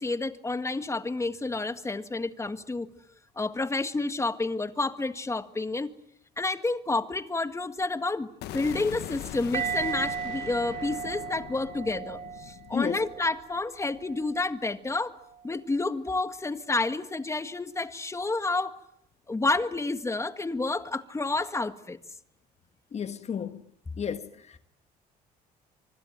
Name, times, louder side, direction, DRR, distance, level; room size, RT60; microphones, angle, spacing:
voice 1, 0.0-2.9 3.4-5.9 6.4-15.1 15.4-18.8 19.3-22.0, left 3 dB, 15° left, 1.7 m, -30 dB
sound 1, 8.4-14.4, left 13 dB, 80° left, 1.5 m, -42 dB
sound 2, 9.5-14.5 15.1-15.3, right 8 dB, 55° right, 2.8 m, -36 dB
voice 2, 12.7-13.0 22.9-23.6 24.0-24.6, left 7 dB, 40° left, 1.5 m, -32 dB
25.5 x 24.5 x 9.1 m
cardioid pair, 110°, 17 cm